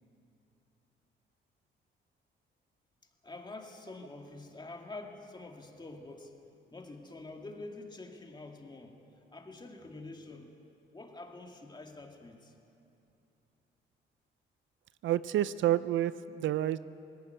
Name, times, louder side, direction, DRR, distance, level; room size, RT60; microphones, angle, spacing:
voice 1, 3.0-6.4 6.7-10.5 10.9-12.6, left 2 dB, 20° left, 2 dB, 2.4 m, -47 dB
voice 2, 15.0-16.8, right 12 dB, 75° right, 15 dB, 0.6 m, -29 dB
19.0 x 16.5 x 9.5 m, 2.8 s
cardioid pair, 90°, 20 cm